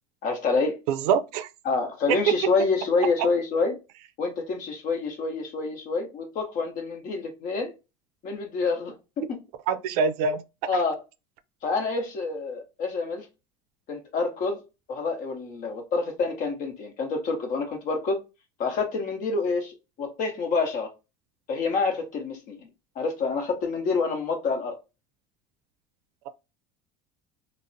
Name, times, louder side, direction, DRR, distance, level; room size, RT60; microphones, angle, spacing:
voice 1, 0.2-0.8 1.6-3.8 4.2-7.7 8.2-9.4 10.7-11.0 11.6-13.3 13.9-18.2 18.6-20.9 21.5-22.7 23.0-24.8, left 4 dB, 45° left, 0.8 m, -27 dB
voice 2, 0.9-1.5 2.1-2.3 3.2-3.3 9.7-10.4, right 7 dB, 80° right, 0.4 m, -24 dB
2.5 x 2.0 x 2.5 m
cardioid pair, 155°, 19 cm